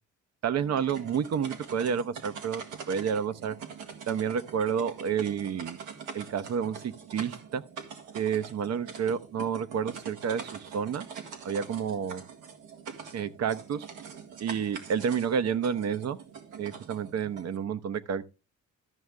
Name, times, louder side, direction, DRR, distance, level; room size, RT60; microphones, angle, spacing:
voice 1, 0.4-2.6 2.9-3.6 4.1-5.8 6.1-7.6 8.1-11.0 11.4-12.2 13.1-13.9 14.4-16.2 16.6-18.3, right 7 dB, 60° right, 0.9 m, -30 dB
sound 1, 0.6-17.6, right 6 dB, 90° right, 1.9 m, -44 dB
13.0 x 6.4 x 3.5 m
cardioid pair, 90°, 30 cm